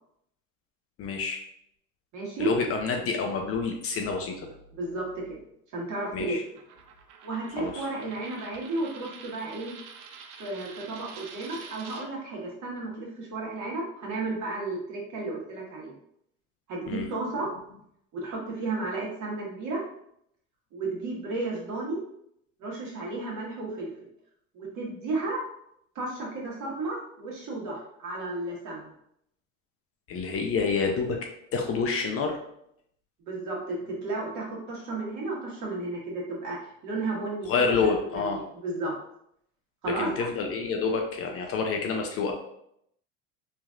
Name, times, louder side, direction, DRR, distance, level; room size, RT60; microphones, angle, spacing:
voice 1, 1.0-1.4 2.4-4.5 6.1-6.4 7.6-7.8 16.9-17.1 30.1-31.2 31.5-32.4 37.5-38.4 40.0-42.3, left 5 dB, 40° left, 3 dB, 0.5 m, -28 dB
voice 2, 2.1-2.5 4.7-5.4 5.7-6.4 7.2-9.7 10.4-15.9 16.7-17.5 18.1-19.8 20.7-22.0 22.6-23.9 24.5-25.4 25.9-28.9 33.3-38.9 39.8-40.1, right 2 dB, 50° right, -3 dB, 1.2 m, -33 dB
Coin (dropping), 6.6-12.1, right 6 dB, 80° right, 0.5 m, -47 dB
3.2 x 2.6 x 2.3 m, 0.73 s
supercardioid pair, 100°, 36 cm